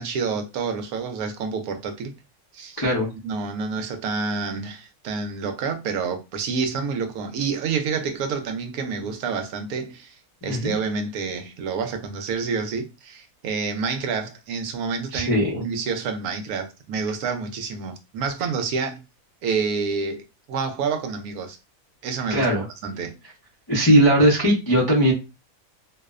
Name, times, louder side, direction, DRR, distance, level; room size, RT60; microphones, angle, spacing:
voice 1, 0.0-2.1 2.5-2.8 3.2-10.1 10.4-19.0 19.4-20.2 20.5-21.6 22.0-23.2, right 5 dB, 80° right, 1.0 m, -28 dB
voice 2, 2.8-3.1 10.4-10.7 15.1-15.6 22.3-22.6 23.7-25.1, equal, 35° left, 0.3 m, -19 dB
2.7 x 2.0 x 2.3 m
omnidirectional pair, 1.6 m